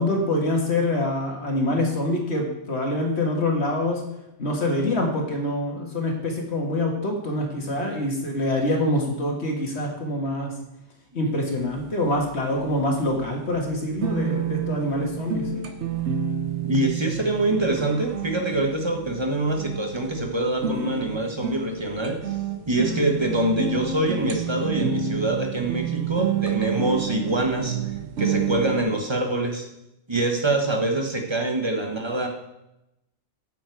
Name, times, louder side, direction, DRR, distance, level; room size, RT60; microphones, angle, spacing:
voice 1, 0.0-4.0 4.4-10.5 11.1-15.7, left 1 dB, 65° left, 1 dB, 1.9 m, -25 dB
sound 1, 11.6-28.8, right 6 dB, 75° right, 1.1 m, -30 dB
voice 2, 16.6-22.4 22.7-27.8 28.2-29.7 30.1-32.3, right 2 dB, 25° right, 2 dB, 1.1 m, -25 dB
8.8 x 6.8 x 4.6 m, 0.88 s
omnidirectional pair, 1.2 m